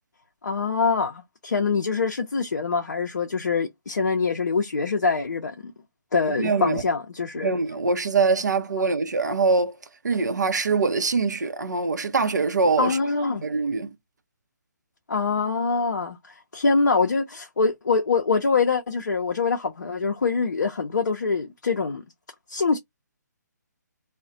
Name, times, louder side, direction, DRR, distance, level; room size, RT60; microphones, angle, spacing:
voice 1, 0.4-5.7 6.1-7.5 12.8-13.4 15.1-22.0 22.5-22.8, left 4 dB, 65° left, 0.5 m, -24 dB
voice 2, 6.2-6.8 7.4-9.8 10.0-13.0 13.4-13.9, right 4 dB, 65° right, 0.6 m, -23 dB
2.3 x 2.1 x 3.8 m
figure-of-eight pair, 140°, 10 cm